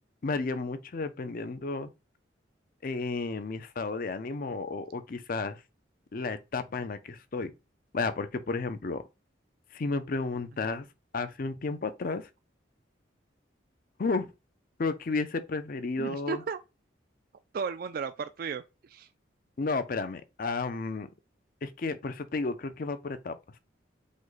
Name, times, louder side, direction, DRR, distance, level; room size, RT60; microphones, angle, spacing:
voice 1, 0.2-1.9 2.8-5.6 6.1-7.5 7.9-9.0 9.7-10.9 11.1-12.3 14.0-14.3 14.8-16.4 19.6-21.1 21.6-23.4, left 3 dB, 50° left, 0.5 m, -32 dB
voice 2, 16.0-16.6 17.5-19.1, right 5 dB, 50° right, 0.3 m, -35 dB
5.1 x 2.2 x 3.9 m
head